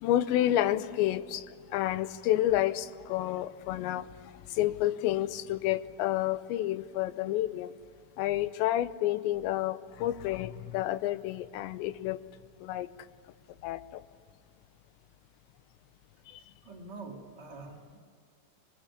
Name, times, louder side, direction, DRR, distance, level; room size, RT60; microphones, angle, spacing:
voice 1, 0.0-4.1 4.5-7.7 8.2-12.2 12.6-12.9 13.6-14.0 16.3-16.4, left 13 dB, 85° left, 14 dB, 3.0 m, -30 dB
voice 2, 16.6-18.0, right 3 dB, 30° right, 1 dB, 2.1 m, -45 dB
23.5 x 18.5 x 9.8 m, 2.2 s
omnidirectional pair, 5.0 m